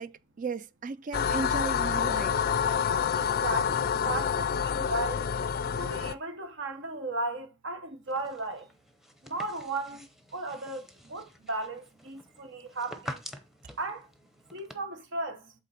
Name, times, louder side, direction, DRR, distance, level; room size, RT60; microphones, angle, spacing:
voice 1, 0.0-2.6, right 4 dB, 40° right, 0.4 m, -36 dB
sound 1, 1.1-6.1, left 7 dB, 50° left, 0.4 m, -28 dB
voice 2, 3.1-5.3 5.7-8.7 9.2-10.1 10.3-13.2 13.8-14.1 14.5-15.5, right 2 dB, 65° right, 1.3 m, -35 dB
sound 2, 8.1-14.7, equal, ahead, 0.9 m, -47 dB
8.1 x 3.8 x 4.2 m
head